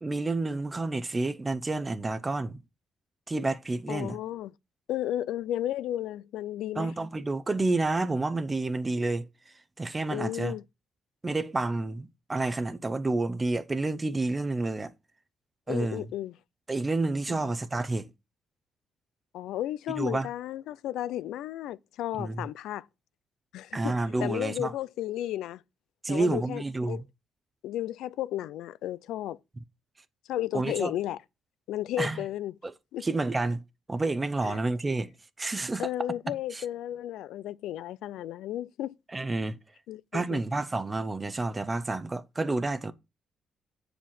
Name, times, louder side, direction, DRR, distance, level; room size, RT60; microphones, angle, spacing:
voice 1, 0.0-2.6 3.3-4.2 6.8-9.3 9.8-10.5 11.2-14.9 15.7-16.0 16.7-18.1 20.0-20.3 22.2-22.5 23.7-24.7 26.0-27.0 30.5-30.9 32.0-32.2 32.6-32.7 33.0-33.6 33.9-35.1 35.4-35.9 36.5-36.6 39.1-39.6 40.1-42.9, right 2 dB, 25° right, 0.7 m, -29 dB
voice 2, 3.9-4.5 4.9-6.9 10.1-10.6 15.7-16.3 17.3-17.4 19.3-22.9 23.5-23.9 24.2-25.6 26.1-27.0 27.6-29.4 30.3-31.2 31.7-32.5 32.9-33.1 34.4-34.6 35.8-38.9 39.9-40.4, left 13 dB, 85° left, 0.4 m, -33 dB
6.9 x 5.0 x 5.9 m
cardioid pair, 90°, 0 cm